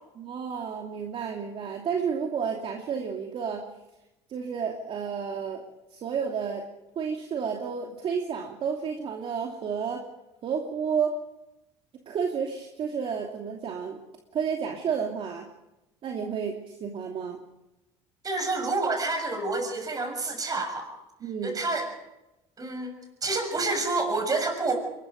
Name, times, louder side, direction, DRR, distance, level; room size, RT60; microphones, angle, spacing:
voice 1, 0.2-3.7 4.3-5.6 5.9-6.6 7.0-10.0 10.4-11.1 12.1-14.0 14.3-15.5 16.0-17.4 21.2-21.6, right 6 dB, 50° right, 1 dB, 2.8 m, -31 dB
voice 2, 18.2-20.9 21.4-21.9 22.6-22.9 23.2-24.8, right 3 dB, 30° right, 5 dB, 6.9 m, -28 dB
23.0 x 21.0 x 5.3 m, 0.95 s
supercardioid pair, 100°, 12 cm